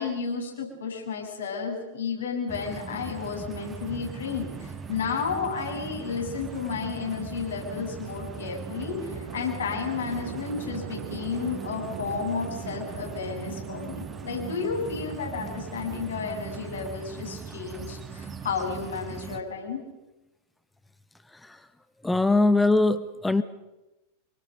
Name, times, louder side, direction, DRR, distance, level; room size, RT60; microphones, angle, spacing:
voice 1, 0.0-19.8, left 5 dB, 65° left, 1 dB, 7.6 m, -32 dB
sound 1, 2.5-19.4, right 6 dB, 20° right, 1.6 m, -40 dB
Chatter / Traffic noise roadway noise / Train, 3.2-16.6, right 8 dB, 55° right, 2.7 m, -44 dB
voice 2, 22.0-23.4, left 2 dB, 5° left, 12 dB, 1.0 m, -22 dB
26.5 x 24.5 x 6.8 m, 1.0 s
figure-of-eight pair, 90°, 0 cm